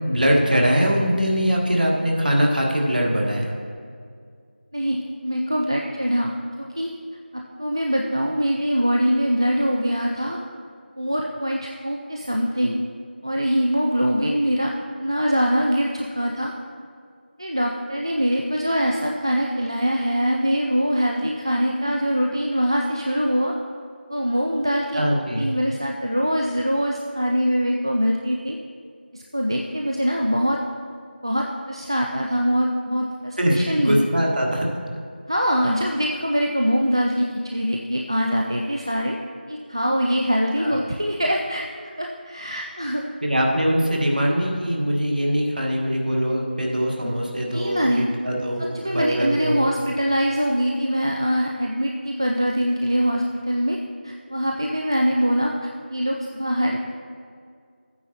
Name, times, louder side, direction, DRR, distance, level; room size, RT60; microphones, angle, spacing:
voice 1, 0.0-3.5 24.9-25.5 33.4-34.7 40.6-40.8 43.2-48.7 48.9-49.6, equal, 50° right, -1 dB, 1.5 m, -22 dB
voice 2, 4.7-6.9 7.3-10.4 11.0-12.8 13.2-14.7 15.0-16.5 17.4-23.5 24.1-25.0 25.3-28.6 29.1-30.6 31.2-34.1 35.3-39.2 39.5-41.6 42.0-43.1 47.5-48.0 48.7-53.8 54.0-56.9, equal, 25° right, 0 dB, 0.3 m, -23 dB
11.5 x 9.1 x 2.9 m, 2.2 s
figure-of-eight pair, 175°, 6 cm